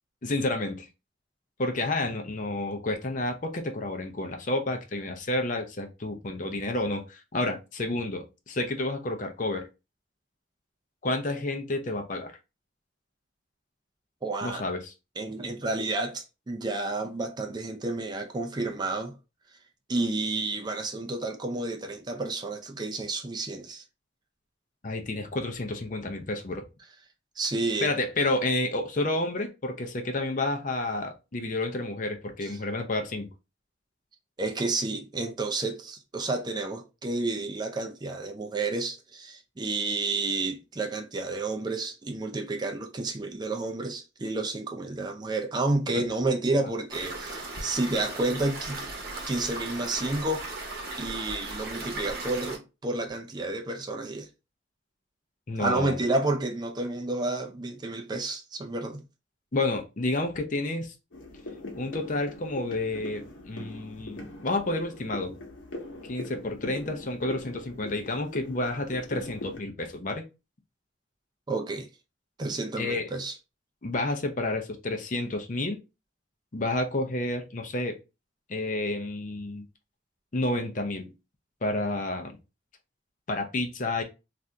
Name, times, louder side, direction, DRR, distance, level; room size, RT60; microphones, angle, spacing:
voice 1, 0.2-0.9 1.6-9.7 11.0-12.3 14.4-14.9 24.8-26.6 27.8-33.3 45.9-46.0 55.5-56.0 59.5-60.9 61.7-65.3 66.0-70.3 72.8-73.1 73.8-75.8 76.5-78.0 78.5-79.6 80.3-81.1 81.6-82.4 83.3-84.0, left 2 dB, 45° left, 0.6 m, -30 dB
voice 2, 14.2-14.6 15.2-19.1 19.9-23.8 27.4-27.9 32.4-32.6 34.4-48.9 49.3-50.5 51.0-54.3 55.6-59.0 71.5-71.9 72.4-73.3, right 2 dB, 25° right, 0.4 m, -30 dB
sound 1, 46.9-52.6, right 2 dB, 55° right, 0.9 m, -37 dB
sound 2, 61.1-69.6, left 2 dB, 85° left, 0.9 m, -41 dB
2.7 x 2.5 x 3.3 m
head